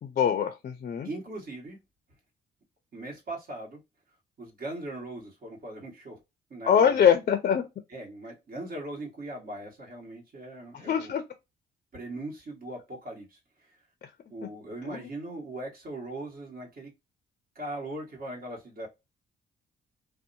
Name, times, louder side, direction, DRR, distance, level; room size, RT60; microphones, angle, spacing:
voice 1, 0.0-1.1 6.6-7.6 10.7-11.2 14.9-15.0, left 8 dB, 45° left, 0.4 m, -23 dB
voice 2, 1.0-1.8 2.9-3.8 4.4-6.2 6.5-7.0 7.9-11.1 11.9-13.8 14.3-16.9 17.5-18.9, right 2 dB, 50° right, 1.4 m, -39 dB
2.7 x 2.1 x 2.6 m
cardioid pair, 90°, 20 cm